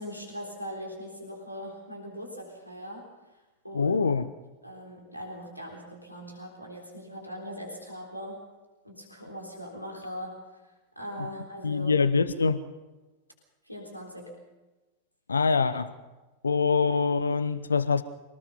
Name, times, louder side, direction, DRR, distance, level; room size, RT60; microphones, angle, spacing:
voice 1, 0.0-4.0 4.6-8.5 8.8-12.0 13.6-14.4, equal, 90° left, 0 dB, 3.7 m, -41 dB
voice 2, 3.7-4.2 11.2-11.3 11.6-12.6 15.3-15.9 16.4-18.0, left 5 dB, 75° left, 14 dB, 0.8 m, -24 dB
25.0 x 18.5 x 5.5 m, 1.2 s
figure-of-eight pair, 90°, 0 cm